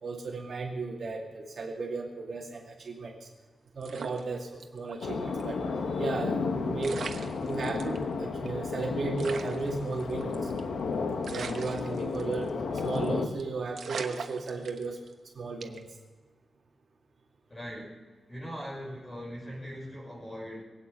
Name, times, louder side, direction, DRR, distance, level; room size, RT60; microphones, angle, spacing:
voice 1, 0.0-3.3 3.7-7.0 7.4-10.5 11.3-15.0 15.3-15.9, right 3 dB, 55° right, -1 dB, 2.5 m, -35 dB
sound 1, 3.8-5.0 5.3-5.4 6.5-6.6 6.8-8.0 8.5-8.6 8.7-8.8 9.2-10.7 11.2-12.5 12.8-13.1 13.4-13.5 13.8-15.1 15.6-15.9, right 5 dB, 70° right, 1.1 m, -40 dB
sound 2, 5.0-13.3, left 4 dB, 90° left, 1.4 m, -32 dB
voice 2, 17.5-18.0 18.3-20.6, equal, 20° left, -2 dB, 5.3 m, -40 dB
22.5 x 9.0 x 6.6 m, 1.4 s
wide cardioid pair, 170°, 0 cm